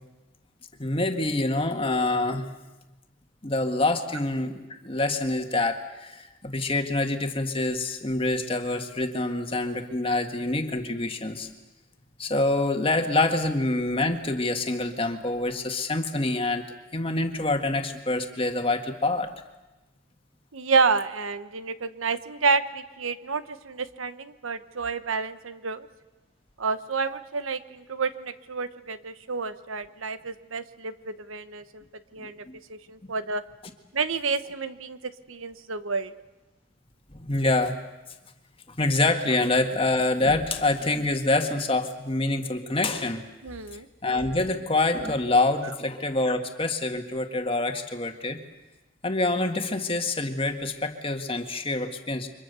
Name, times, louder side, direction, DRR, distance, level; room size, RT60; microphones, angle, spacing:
voice 1, 0.8-2.5 3.4-11.5 12.2-16.7 16.9-19.3 32.2-32.6 37.1-37.7 38.8-43.2 44.0-48.4 49.0-52.3, left 2 dB, 25° left, 5 dB, 1.8 m, -26 dB
voice 2, 20.5-25.9 26.6-31.8 32.1-32.4 32.7-33.4 33.9-35.0 35.3-36.1 43.4-43.9, right 4 dB, 80° right, 12 dB, 1.1 m, -29 dB
29.5 x 24.5 x 6.9 m, 1.1 s
head